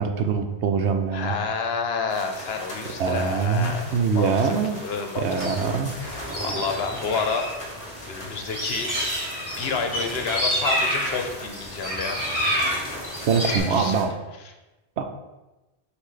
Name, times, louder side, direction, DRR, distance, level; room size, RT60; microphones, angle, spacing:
voice 1, 0.0-1.3 3.0-4.8 5.2-6.0 13.3-14.1 15.0-15.1, right 5 dB, 80° right, 6 dB, 1.0 m, -23 dB
voice 2, 1.1-5.3 5.6-7.5 8.1-8.9 9.6-12.2 13.4-13.9, left 5 dB, 65° left, 5 dB, 1.0 m, -29 dB
sound 1, 2.1-14.0, left 1 dB, 30° left, 1.2 m, -39 dB
sound 2, 5.4-7.5 7.8-13.6, equal, 15° right, 1.7 m, -28 dB
6.3 x 2.7 x 5.6 m, 1.1 s
omnidirectional pair, 1.1 m